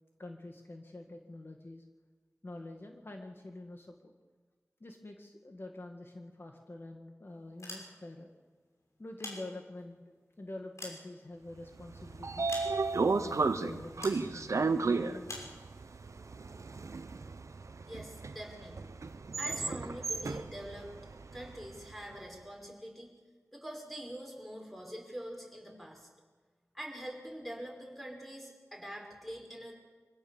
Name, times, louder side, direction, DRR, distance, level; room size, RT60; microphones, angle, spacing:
voice 1, 0.2-1.8 2.4-4.1 4.8-8.3 9.0-10.0 10.4-12.5 13.2-15.4 19.9-20.0, left 2 dB, 50° left, 3 dB, 1.8 m, -46 dB
sound 1, 7.5-8.3 9.0-10.0 10.5-11.7 12.5-13.1 14.0-14.3 15.3-15.6, left 1 dB, 75° left, 6.0 m, -45 dB
Train / Sliding door, 11.8-21.9, right 4 dB, 85° right, 0.9 m, -34 dB
voice 2, 17.8-18.9 19.4-21.0 21.3-23.1 23.5-26.1 26.7-29.7, equal, ahead, 1 dB, 5.5 m, -44 dB
25.0 x 16.5 x 7.3 m, 1.4 s
wide cardioid pair, 70°, 5 cm